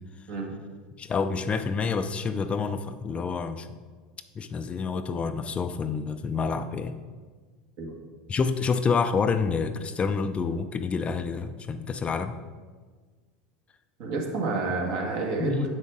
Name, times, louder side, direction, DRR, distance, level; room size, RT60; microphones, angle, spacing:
voice 1, 1.0-3.7 4.4-6.9 8.3-12.4 15.4-15.7, left 5 dB, 25° left, 9 dB, 0.4 m, -28 dB
voice 2, 14.0-15.7, right 3 dB, 60° right, 0 dB, 1.6 m, -29 dB
7.3 x 6.2 x 3.6 m, 1.5 s
hypercardioid pair, 100°, 5 cm